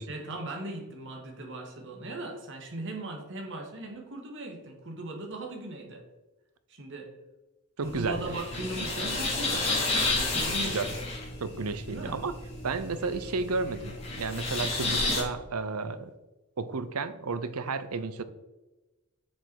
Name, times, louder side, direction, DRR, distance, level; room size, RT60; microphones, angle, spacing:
voice 1, 0.1-6.0 6.7-7.1 7.8-10.9 11.9-12.2, right 2 dB, 60° right, 2 dB, 1.8 m, -38 dB
sound 1, 7.8-15.2, left 2 dB, 30° left, 3.2 m, -31 dB
voice 2, 7.8-8.3 10.7-10.9 11.4-12.3 12.6-16.1 16.6-18.2, right 4 dB, 80° right, 12 dB, 0.7 m, -32 dB
7.4 x 6.9 x 4.7 m, 1.1 s
head